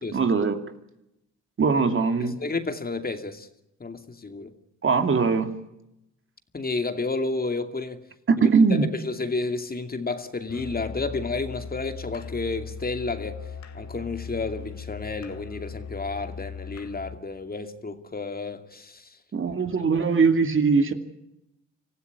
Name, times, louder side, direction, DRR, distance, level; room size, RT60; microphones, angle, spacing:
voice 1, 0.1-0.6 1.6-2.4 4.8-5.5 8.3-8.9 19.3-20.9, right 5 dB, 40° right, 2.6 m, -21 dB
voice 2, 2.2-3.5 3.8-4.5 6.5-8.0 8.4-13.5 13.7-19.2 19.6-20.1, left 3 dB, 30° left, 2.5 m, -31 dB
Musical instrument, 10.5-17.2, left 5 dB, 55° left, 2.8 m, -39 dB
26.0 x 15.5 x 9.6 m
supercardioid pair, 65°, 32 cm